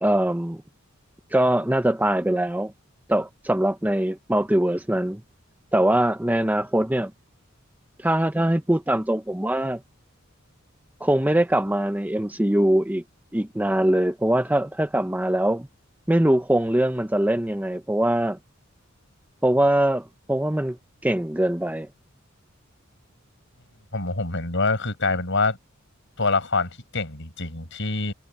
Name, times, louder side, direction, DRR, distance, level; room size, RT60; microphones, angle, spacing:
voice 1, 0.0-0.6 1.3-2.7 3.1-5.2 5.7-7.1 8.0-9.8 11.0-13.0 13.3-15.7 16.1-18.4 19.4-20.8 21.0-21.9, right 1 dB, 10° right, 0.8 m, -22 dB
voice 2, 23.9-25.6 26.2-28.1, left 3 dB, 60° left, 6.3 m, -25 dB
head